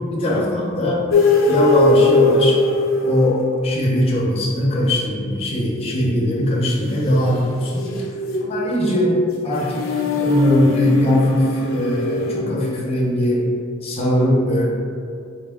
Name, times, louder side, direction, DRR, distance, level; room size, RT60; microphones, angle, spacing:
voice 1, 0.1-1.0 1.5-2.6 3.0-7.9 8.4-9.2 9.4-13.5 13.8-14.7, left 1 dB, 30° left, -5 dB, 0.7 m, -20 dB
sound 1, 1.1-3.7 7.2-12.4, left 3 dB, 85° left, 0.5 m, -20 dB
4.5 x 2.3 x 3.5 m, 2.4 s
head